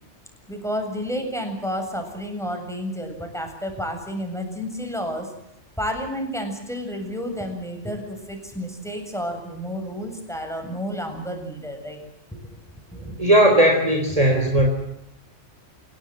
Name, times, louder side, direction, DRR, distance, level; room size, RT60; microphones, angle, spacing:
voice 1, 0.5-5.3 5.8-12.0 12.3-12.4 12.9-13.2, equal, ahead, 4 dB, 7.5 m, -31 dB
voice 2, 13.2-14.7, right 1 dB, 30° right, 3 dB, 3.7 m, -17 dB
29.5 x 18.0 x 7.7 m, 0.82 s
omnidirectional pair, 1.2 m